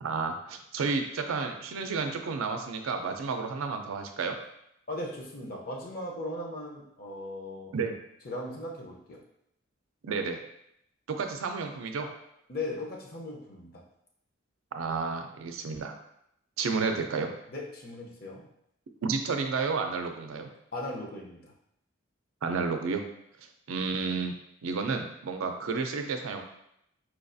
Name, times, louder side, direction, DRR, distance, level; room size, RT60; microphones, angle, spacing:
voice 1, 0.0-4.3 7.7-8.0 10.0-10.4 11.1-12.1 14.7-15.9 16.6-17.3 19.0-20.5 22.4-23.0 23.7-24.3 24.6-26.4, right 4 dB, 85° right, 5 dB, 0.4 m, -31 dB
voice 2, 4.9-7.7 8.2-9.2 12.5-13.8 17.5-18.5 20.7-21.5, left 1 dB, 45° left, -1 dB, 0.6 m, -38 dB
4.5 x 2.4 x 2.6 m, 0.76 s
head